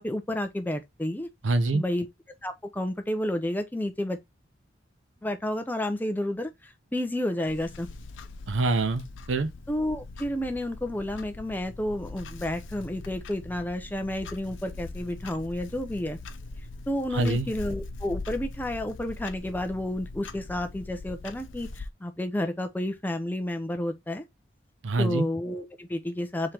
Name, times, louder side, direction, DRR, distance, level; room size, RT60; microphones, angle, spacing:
voice 1, 0.0-1.3 1.7-2.1 2.4-4.2 5.2-7.9 9.7-16.2 16.9-24.2 25.0-26.5, left 1 dB, 10° left, 0.6 m, -31 dB
voice 2, 1.4-1.8 8.5-9.5 17.1-17.5 24.8-25.3, right 2 dB, 85° right, 0.7 m, -25 dB
Clock, 7.4-21.9, left 3 dB, 85° left, 0.6 m, -41 dB
3.7 x 3.2 x 4.3 m
head